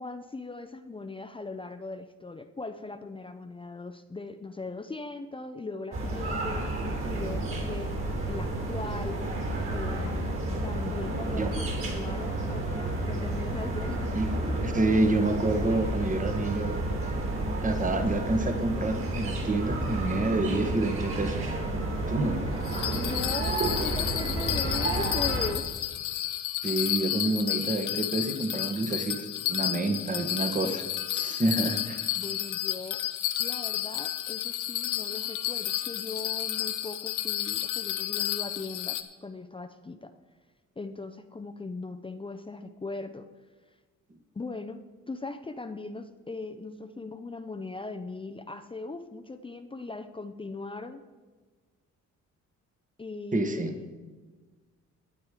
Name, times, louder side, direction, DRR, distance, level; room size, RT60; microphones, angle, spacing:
voice 1, 0.0-6.6 7.0-7.9 8.2-9.2 9.7-10.2 10.6-12.6 13.1-14.1 22.8-25.7 32.1-33.0 33.4-40.1 40.8-43.3 44.3-44.8 45.1-51.0 53.0-53.9, left 3 dB, 15° left, 8 dB, 0.6 m, -39 dB
sound 1, 5.9-25.5, right 2 dB, 45° right, 3.3 m, -31 dB
voice 2, 14.6-16.8 17.6-21.5 22.1-22.4 26.6-30.8 31.1-32.1 53.3-53.7, right 2 dB, 25° right, 7 dB, 1.3 m, -28 dB
Bell, 22.6-39.0, left 13 dB, 90° left, 0.8 m, -31 dB
12.0 x 9.1 x 5.0 m, 1.4 s
cardioid pair, 90°, 30 cm